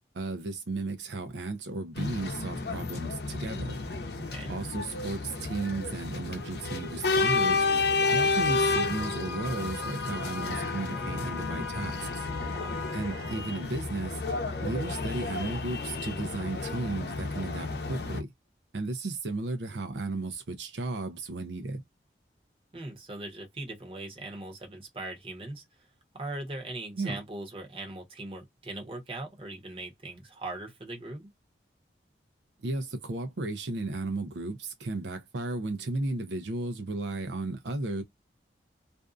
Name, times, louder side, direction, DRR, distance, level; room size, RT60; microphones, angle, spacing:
voice 1, 0.1-3.8 4.5-7.7 8.1-12.3 12.9-14.2 14.6-18.3 18.7-21.8 27.0-27.1 32.6-38.0, right 2 dB, 80° right, 0.6 m, -34 dB
sound 1, 1.9-18.2, left 3 dB, 65° left, 0.7 m, -31 dB
voice 2, 4.2-4.5 12.5-12.8 22.7-25.9 26.1-31.3, right 2 dB, 30° right, 1.0 m, -40 dB
2.6 x 2.3 x 2.4 m
head